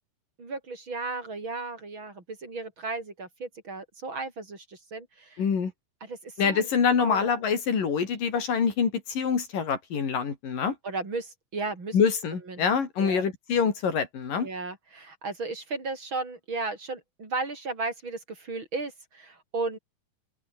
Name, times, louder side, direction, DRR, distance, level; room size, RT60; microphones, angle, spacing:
voice 1, 0.4-5.4 6.0-6.7 7.0-7.4 10.8-12.0 12.5-12.7 13.0-13.3 14.4-19.8, right 3 dB, 35° right, 6.2 m, -35 dB
voice 2, 5.4-5.7 6.4-10.7 11.9-14.5, left 6 dB, 80° left, 5.4 m, -25 dB
open air
omnidirectional pair, 3.8 m